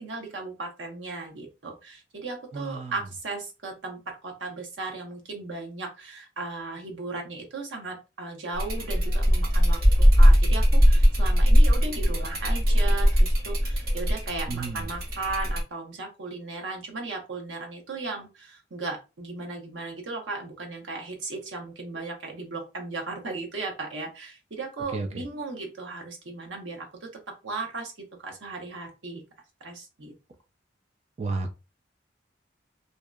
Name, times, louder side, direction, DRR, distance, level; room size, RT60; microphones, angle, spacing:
voice 1, 0.0-9.8 10.1-27.1 27.4-29.2 29.6-30.1, right 3 dB, 80° right, 2 dB, 0.8 m, -36 dB
voice 2, 2.5-3.0 14.5-14.8 24.9-25.2 31.2-31.5, right 3 dB, 35° right, 4 dB, 0.3 m, -32 dB
sound 1, 8.5-15.6, equal, 50° right, 0.9 m, -20 dB
2.7 x 2.1 x 2.2 m, 0.28 s
head